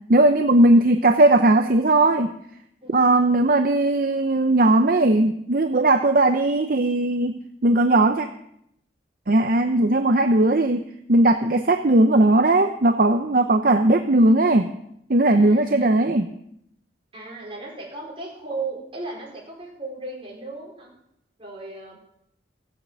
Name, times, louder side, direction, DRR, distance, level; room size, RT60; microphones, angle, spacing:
voice 1, 0.1-2.3 2.9-8.3 9.3-14.7 15.1-16.3, right 2 dB, 50° right, 7 dB, 0.7 m, -18 dB
voice 2, 2.8-3.3 15.3-15.9 17.1-20.9 21.4-22.0, right 3 dB, 30° right, -3 dB, 5.0 m, -36 dB
15.5 x 8.5 x 7.7 m, 0.75 s
head